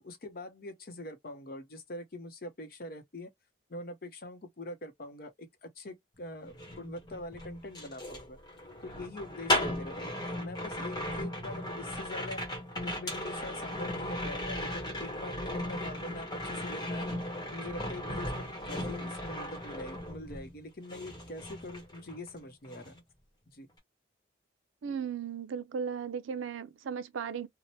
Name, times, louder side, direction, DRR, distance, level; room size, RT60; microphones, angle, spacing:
voice 1, 0.0-3.3 3.7-8.4 8.8-12.4 12.8-17.1 17.5-23.0 23.5-23.7, left 1 dB, 50° left, 0.7 m, -44 dB
sound 1, 6.5-20.6 20.9-22.4 22.6-23.0, left 1 dB, 20° left, 0.9 m, -36 dB
voice 2, 24.8-27.5, right 6 dB, 85° right, 0.4 m, -36 dB
2.8 x 2.1 x 3.0 m
head